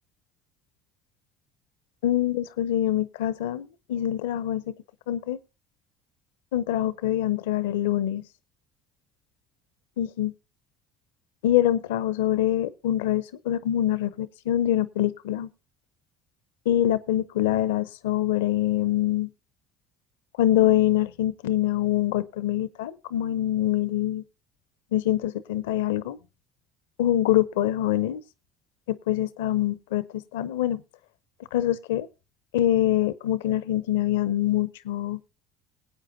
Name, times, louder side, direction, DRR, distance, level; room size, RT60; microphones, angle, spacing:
voice 1, 2.0-4.7 5.1-5.4 6.5-8.2 10.0-10.3 11.4-15.5 16.7-19.3 20.4-24.2 24.9-26.2 27.0-28.2 28.9-30.8 31.5-32.1 32.5-35.2, left 12 dB, 85° left, 17 dB, 0.6 m, -25 dB
22.0 x 8.5 x 2.7 m, 0.28 s
hypercardioid pair, 70°, 0 cm